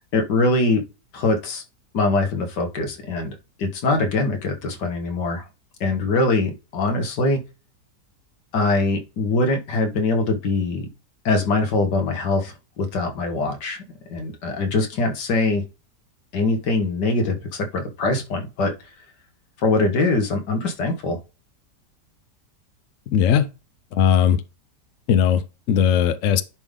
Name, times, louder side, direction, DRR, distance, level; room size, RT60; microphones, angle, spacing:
voice 1, 0.1-0.8 1.1-1.6 1.9-5.4 5.8-7.4 8.5-10.9 11.3-13.8 14.1-15.6 16.3-18.7 19.6-21.2, left 2 dB, 85° left, 2.0 m, -22 dB
voice 2, 23.1-23.5 23.9-24.4 25.1-26.4, left 8 dB, 60° left, 0.9 m, -18 dB
10.5 x 3.6 x 3.7 m
omnidirectional pair, 1.8 m